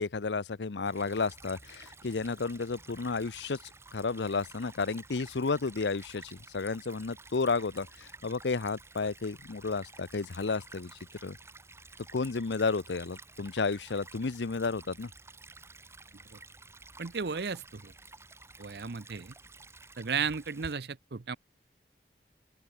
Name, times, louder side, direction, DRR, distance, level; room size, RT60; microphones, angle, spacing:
voice 1, 0.0-3.6 3.9-11.4 12.1-15.1, left 4 dB, 85° left, 0.7 m, -32 dB
Stream / Trickle dribble, 0.9-20.7, right 3 dB, 15° right, 5.9 m, -52 dB
voice 2, 17.0-17.9 18.6-19.3 20.0-21.4, right 5 dB, 70° right, 0.7 m, -34 dB
open air
head